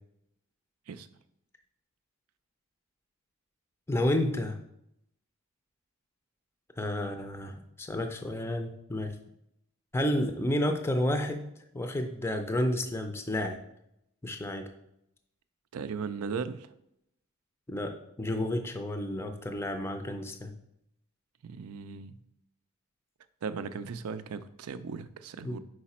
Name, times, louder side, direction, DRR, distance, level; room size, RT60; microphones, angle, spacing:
voice 1, 3.9-4.6 6.8-9.1 9.9-11.4 11.7-13.6 14.2-14.7 17.7-20.5 25.4-25.6, left 1 dB, 10° left, 6 dB, 0.4 m, -31 dB
voice 2, 15.7-16.7 21.4-22.2 23.4-25.6, right 5 dB, 90° right, 12 dB, 0.4 m, -37 dB
5.0 x 4.8 x 4.2 m, 0.79 s
head